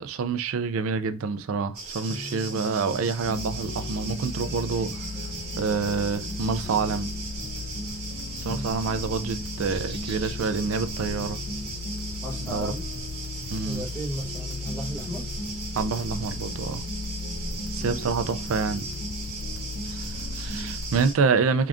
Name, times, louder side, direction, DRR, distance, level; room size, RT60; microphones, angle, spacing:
voice 1, 0.0-5.1 5.6-7.1 8.4-11.4 12.4-12.7 13.5-13.9 15.7-16.8 17.7-18.8 19.9-21.7, right 5 dB, 80° right, 0.4 m, -27 dB
sound 1, 1.7-21.1, right 3 dB, 50° right, 0.9 m, -37 dB
sound 2, 2.1-13.9 14.2-20.7, equal, 40° left, 1.2 m, -40 dB
sound 3, 3.2-21.0, left 4 dB, 75° left, 0.4 m, -37 dB
voice 2, 12.2-12.9 13.6-15.2 17.8-18.0, equal, 10° left, 0.9 m, -35 dB
3.7 x 3.4 x 2.4 m
head